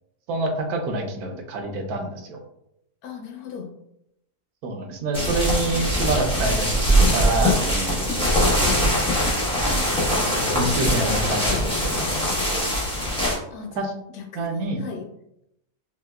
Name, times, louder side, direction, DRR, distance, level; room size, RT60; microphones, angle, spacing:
voice 1, 0.3-2.4 4.6-8.4 9.6-12.7 13.8-13.9 14.4-14.8, right 2 dB, 85° right, 3 dB, 1.1 m, -27 dB
voice 2, 3.0-3.7 13.2-13.9 14.1-15.1, left 6 dB, 80° left, 2 dB, 1.1 m, -37 dB
sound 1, 5.1-13.4, equal, 5° left, 0.6 m, -22 dB
sound 2, 8.1-13.2, left 2 dB, 60° left, 0.7 m, -35 dB
4.4 x 2.2 x 2.2 m, 0.80 s
omnidirectional pair, 1.6 m